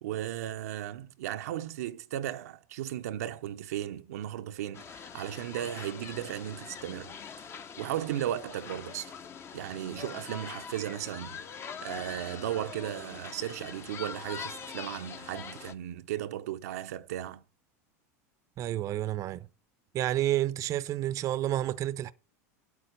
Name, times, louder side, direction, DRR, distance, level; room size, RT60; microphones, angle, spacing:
voice 1, 0.0-7.1 7.8-9.1 9.5-11.4 11.8-17.4, right 12 dB, 80° right, 0.7 m, -36 dB
sound 1, 4.7-15.7, left 6 dB, 30° left, 0.9 m, -43 dB
voice 2, 18.6-19.5 19.9-22.1, right 13 dB, 40° right, 0.7 m, -30 dB
8.5 x 8.4 x 5.3 m
supercardioid pair, 115°, 8 cm